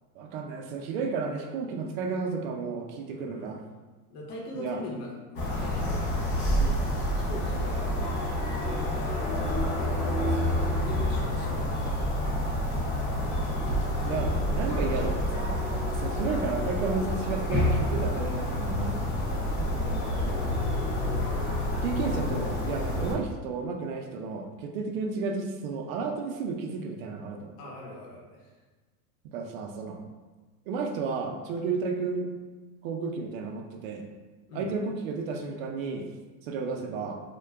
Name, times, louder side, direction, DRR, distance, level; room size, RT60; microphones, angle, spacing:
voice 1, 0.2-3.6 4.5-4.8 6.6-6.8 10.2-10.8 13.1-13.3 14.0-19.4 20.2-20.5 21.8-27.5 29.3-30.0 30.7-32.3 32.8-34.0 34.5-36.1 36.4-37.2, right 4 dB, 60° right, 3 dB, 0.5 m, -33 dB
voice 2, 3.1-3.6 4.1-6.2 7.1-8.0 8.6-9.4 10.6-12.4 27.6-28.6 34.5-34.7, left 2 dB, 70° left, -2 dB, 0.9 m, -41 dB
sound 1, 5.4-23.1, left 1 dB, 25° left, 0.4 m, -28 dB
2.2 x 2.2 x 3.3 m, 1.3 s
supercardioid pair, 120°, 47 cm